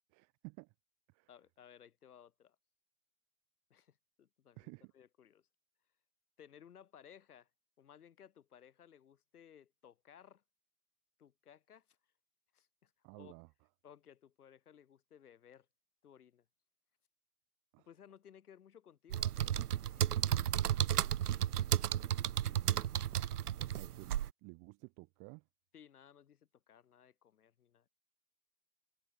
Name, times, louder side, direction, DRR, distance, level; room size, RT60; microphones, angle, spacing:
voice 1, 0.1-0.7 1.1-1.3 4.6-4.9 13.0-13.5 17.7-17.9 22.4-22.9 23.6-25.5, right 29 dB, 40° right, 2.2 m, -53 dB
voice 2, 1.3-2.6 3.7-5.5 6.4-7.5 7.8-10.4 11.2-12.0 12.5-13.3 13.8-15.7 16.0-16.4 17.8-20.4 25.7-27.9, left 9 dB, 75° left, 6.7 m, -60 dB
sound 1, 19.1-24.3, right 11 dB, 85° right, 0.7 m, -33 dB
hypercardioid pair, 105°, 45 cm